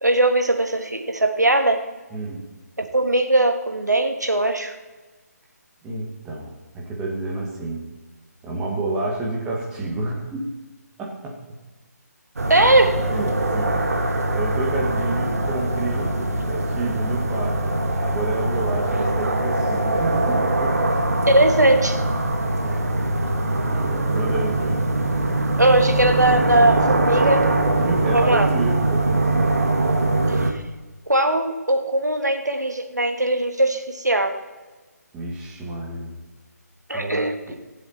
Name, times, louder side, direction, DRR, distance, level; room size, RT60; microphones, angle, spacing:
voice 1, 0.0-1.8 2.9-4.7 12.5-13.0 21.3-22.0 25.6-27.4 28.1-28.5 30.3-30.6 31.1-34.4 36.9-37.5, right 1 dB, 80° right, 6 dB, 1.6 m, -20 dB
voice 2, 2.1-2.5 5.8-7.9 8.4-10.5 11.0-11.4 13.1-20.8 22.6-22.9 23.2-24.8 27.8-29.6 35.1-36.2 36.9-37.6, right 2 dB, 10° right, -3 dB, 1.7 m, -30 dB
sound 1, 12.4-30.5, right 2 dB, 60° right, 1.6 m, -22 dB
16.5 x 7.5 x 4.2 m, 1.2 s
figure-of-eight pair, 150°, 9 cm